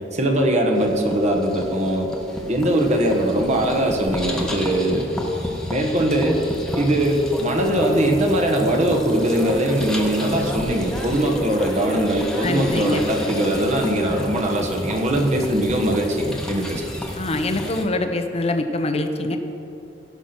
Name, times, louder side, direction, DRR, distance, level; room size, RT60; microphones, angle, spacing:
voice 1, 0.1-2.1 2.5-5.1 5.7-6.4 6.8-16.8, right 1 dB, 40° right, 1 dB, 1.4 m, -21 dB
sound 1, 0.8-17.8, equal, 5° left, 1.2 m, -31 dB
voice 2, 12.4-13.0 17.2-19.4, left 2 dB, 35° left, 7 dB, 0.8 m, -24 dB
15.5 x 5.8 x 5.9 m, 2.8 s
head